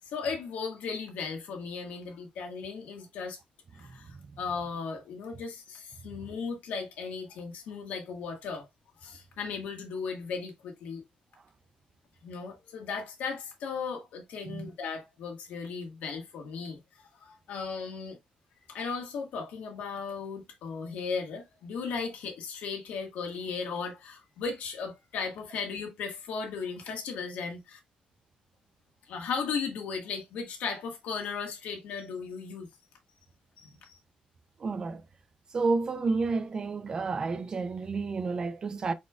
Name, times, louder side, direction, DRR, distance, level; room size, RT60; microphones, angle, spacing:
voice 1, 0.0-3.4 3.7-8.7 9.0-11.0 12.2-16.8 17.2-18.2 18.7-27.8 29.1-32.7 33.6-33.9, left 5 dB, 90° left, 1.4 m, -36 dB
voice 2, 34.6-35.0 35.5-38.9, right 4 dB, 30° right, 0.4 m, -30 dB
4.8 x 4.2 x 2.3 m
cardioid pair, 170°, 3 cm